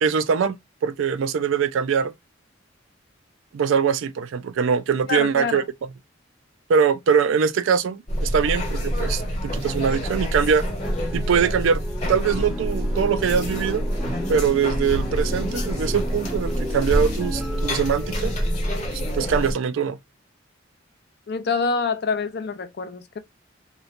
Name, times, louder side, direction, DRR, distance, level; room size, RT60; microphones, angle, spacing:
voice 1, 0.0-2.1 3.5-5.6 6.7-10.7 11.1-11.8 12.1-13.8 14.3-18.3 19.1-20.0, right 6 dB, 80° right, 0.4 m, -22 dB
voice 2, 5.1-5.7 21.3-23.2, left 4 dB, 55° left, 0.4 m, -26 dB
sound 1, 8.1-19.5, equal, 35° left, 1.0 m, -27 dB
sound 2, 10.8-19.2, equal, 5° right, 0.4 m, -36 dB
3.0 x 2.2 x 2.4 m
head